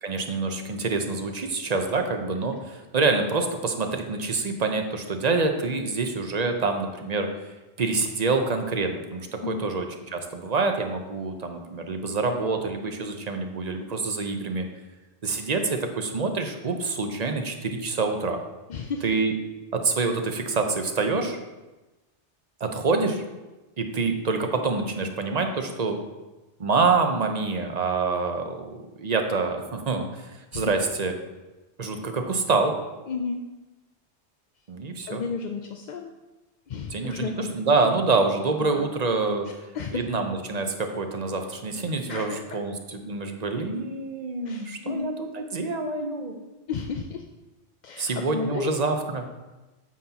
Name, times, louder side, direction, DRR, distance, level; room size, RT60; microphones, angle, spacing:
voice 1, 0.0-7.3 7.8-14.7 15.2-18.4 19.0-19.3 19.7-21.4 22.6-23.2 23.8-26.0 26.6-31.1 31.8-32.7 34.7-35.2 36.9-39.5 39.9-46.3 48.0-49.2, right 3 dB, 40° right, 5 dB, 0.8 m, -26 dB
voice 2, 9.4-9.8 18.7-19.1 30.5-30.6 33.1-33.4 35.1-36.1 36.7-37.5 38.6-38.9 39.5-40.2 42.1-42.6 44.5-45.1 46.7-47.3 47.8-48.7, left 5 dB, 55° left, 4 dB, 0.5 m, -33 dB
9.3 x 7.5 x 2.9 m, 1.1 s
omnidirectional pair, 1.2 m